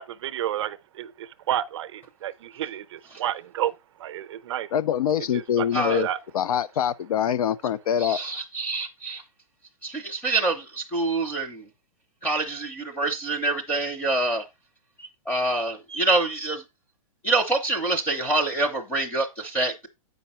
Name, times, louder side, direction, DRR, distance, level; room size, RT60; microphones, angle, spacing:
voice 1, 0.0-3.7 4.0-4.7 5.3-6.2, right 11 dB, 50° right, 0.6 m, -31 dB
voice 2, 4.7-6.1 6.3-8.2, left 9 dB, 85° left, 0.6 m, -24 dB
voice 3, 5.7-6.0 8.0-9.2 9.8-11.6 12.2-14.4 15.3-16.6 17.2-19.9, right 2 dB, 10° left, 0.8 m, -26 dB
8.0 x 5.3 x 4.3 m
hypercardioid pair, 170°, 18 cm